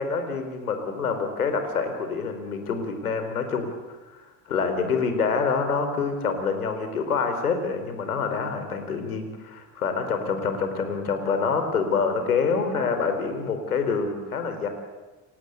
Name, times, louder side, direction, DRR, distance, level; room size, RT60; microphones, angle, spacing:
voice 1, 0.0-3.7 4.5-14.7, left 5 dB, 85° left, 7 dB, 4.2 m, -26 dB
29.5 x 24.5 x 8.2 m, 1.2 s
hypercardioid pair, 60°, 43 cm